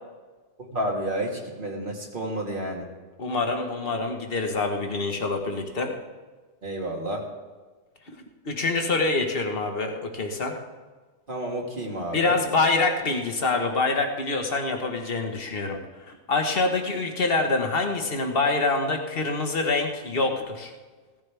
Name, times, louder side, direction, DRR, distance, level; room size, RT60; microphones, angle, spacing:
voice 1, 0.6-2.9 6.6-7.2 11.3-12.4, right 1 dB, 40° right, -1 dB, 2.0 m, -30 dB
voice 2, 3.2-5.9 8.4-10.5 12.1-15.8 16.1-20.7, left 3 dB, 45° left, 3 dB, 1.6 m, -25 dB
17.0 x 14.0 x 3.5 m, 1.3 s
omnidirectional pair, 1.3 m